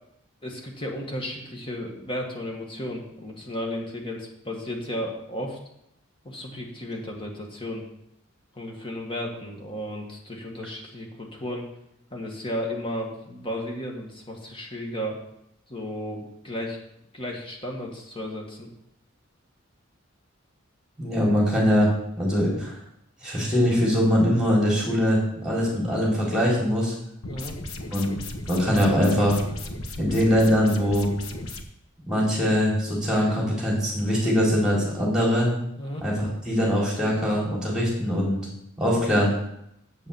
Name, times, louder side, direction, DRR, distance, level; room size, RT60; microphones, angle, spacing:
voice 1, 0.4-5.6 6.2-7.8 8.5-11.7 12.1-15.2 15.7-16.8 17.1-18.7 27.2-27.6 35.8-36.0, left 1 dB, 25° left, 0 dB, 1.8 m, -34 dB
voice 2, 21.0-21.9 22.2-22.8 23.2-26.9 27.9-28.2 28.5-29.4 30.0-31.1 32.1-35.5 36.0-38.5 38.8-39.3, equal, 5° right, -4 dB, 4.1 m, -22 dB
sound 1, 27.2-31.6, left 1 dB, 80° left, 1.2 m, -36 dB
8.3 x 7.1 x 7.2 m, 0.78 s
head